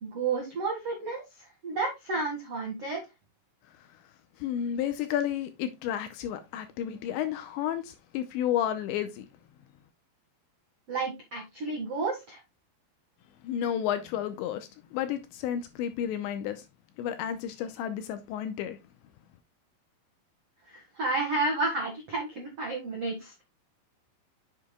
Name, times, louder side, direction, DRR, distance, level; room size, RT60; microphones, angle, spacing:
voice 1, 0.0-3.0 10.9-12.4 20.7-23.4, right 3 dB, 60° right, 1.6 m, -31 dB
voice 2, 4.4-9.3 13.4-16.6 17.0-18.8, left 10 dB, 80° left, 2.7 m, -31 dB
8.6 x 7.4 x 2.2 m
omnidirectional pair, 5.7 m